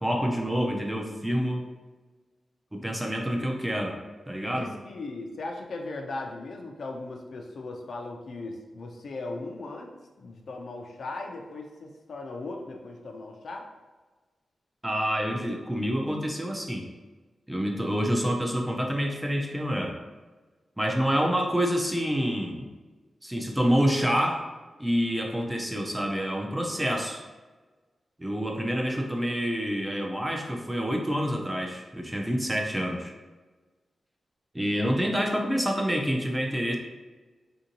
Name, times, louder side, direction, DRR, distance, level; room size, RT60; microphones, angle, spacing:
voice 1, 0.0-1.6 2.7-4.0 4.3-4.7 14.8-16.9 17.5-19.9 20.8-22.7 23.2-24.4 24.8-27.2 28.2-33.1 34.5-36.8, equal, 10° right, 1 dB, 0.4 m, -27 dB
voice 2, 4.4-9.9 10.2-13.7, left 2 dB, 60° left, 2 dB, 0.4 m, -38 dB
3.6 x 2.6 x 2.8 m, 1.3 s
wide cardioid pair, 160°, 0 cm